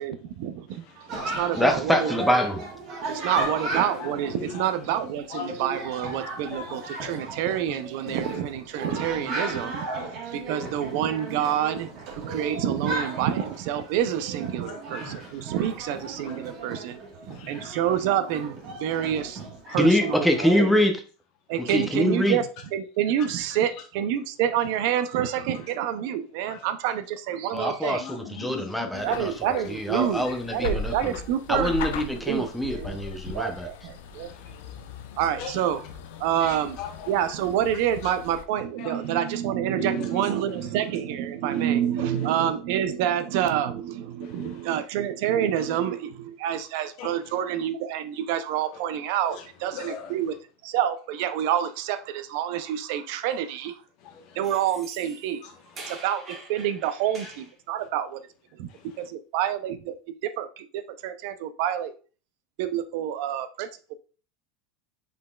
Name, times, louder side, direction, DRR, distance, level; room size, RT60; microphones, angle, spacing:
voice 1, 0.0-2.1 3.0-20.7 21.5-28.0 29.0-31.7 32.3-32.5 32.7-33.0 33.2-34.3 35.2-35.8 36.2-36.8 37.1-50.3 50.6-53.8 54.3-55.4 55.9-58.2 58.5-58.7 59.0-62.0 62.6-63.9, right 10 dB, 65° right, 0.5 m, -28 dB
voice 2, 0.7-1.4 3.1-3.3 3.7-4.8 5.3-6.0 6.4-7.3 14.7-15.6 16.1-16.6 17.3-17.9 19.7-19.8 23.2-23.7 26.5-26.7 28.0-29.7 30.0-31.1 32.9-33.4 34.1-35.6 36.3-37.1 38.0-38.1 38.8-39.2 39.8-40.3 41.5-41.6 42.0-42.3 44.2-44.7 45.6-45.7 47.0-47.3 49.3-50.2 54.0-54.5 55.4-55.9 58.7-59.1, left 5 dB, 50° left, 1.0 m, -42 dB
Chatter, 1.1-20.7, right 2 dB, 40° right, 1.4 m, -36 dB
voice 3, 1.5-2.6 19.8-20.9 21.6-22.4 27.5-29.3 29.7-31.1 31.5-33.7, equal, ahead, 0.6 m, -24 dB
sound 1, 28.9-38.4, left 3 dB, 85° left, 0.5 m, -38 dB
sound 2, 54.4-57.5, right 2 dB, 25° right, 1.1 m, -45 dB
5.3 x 4.0 x 2.3 m
supercardioid pair, 150°, 0 cm